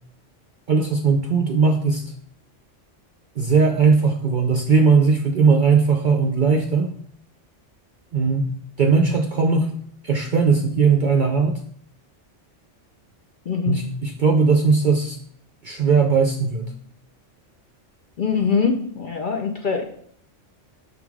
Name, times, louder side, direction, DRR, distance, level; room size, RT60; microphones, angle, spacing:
voice 1, 0.7-2.1 3.4-6.9 8.1-9.7 10.0-11.6 13.7-15.2 15.6-16.7, right 5 dB, 50° right, 3 dB, 0.6 m, -19 dB
voice 2, 13.5-13.8 18.2-19.9, left 5 dB, 50° left, 3 dB, 0.7 m, -23 dB
6.3 x 3.8 x 4.7 m, 0.62 s
omnidirectional pair, 1.3 m